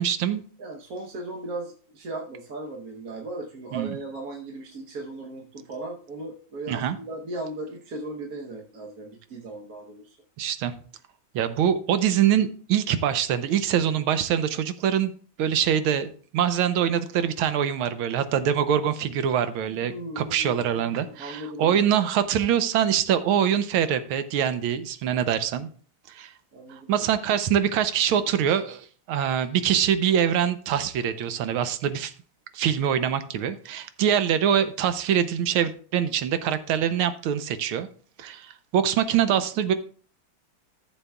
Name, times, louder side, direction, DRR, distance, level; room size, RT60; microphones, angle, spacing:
voice 1, 0.0-0.4 3.7-4.0 6.7-7.0 10.4-10.7 11.3-15.1 15.4-25.7 26.1-26.3 26.7-32.1 32.5-37.9 38.2-39.7, right 9 dB, 85° right, 1.6 m, -24 dB
voice 2, 0.6-10.1 19.8-21.8 26.5-27.1, right 2 dB, 55° right, 1.3 m, -37 dB
14.5 x 7.1 x 2.3 m
omnidirectional pair, 2.3 m